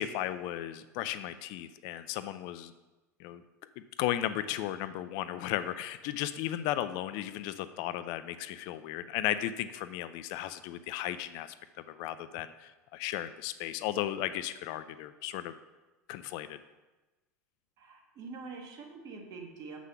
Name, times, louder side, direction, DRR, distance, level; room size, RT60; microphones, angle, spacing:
voice 1, 0.0-2.7 3.2-3.4 3.8-15.6 16.1-16.6, left 12 dB, 50° left, 13 dB, 0.4 m, -35 dB
voice 2, 17.8-19.8, right 4 dB, 45° right, 1 dB, 1.9 m, -45 dB
7.4 x 6.1 x 5.7 m, 1.1 s
figure-of-eight pair, 80°, 9 cm